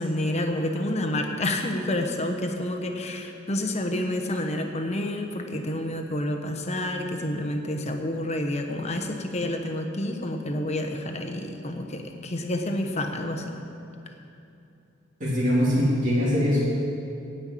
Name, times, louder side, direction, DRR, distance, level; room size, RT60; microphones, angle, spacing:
voice 1, 0.0-13.4, left 1 dB, 35° left, 4 dB, 1.1 m, -29 dB
voice 2, 15.2-16.6, equal, 45° right, -7 dB, 3.1 m, -22 dB
16.5 x 5.7 x 8.5 m, 2.7 s
head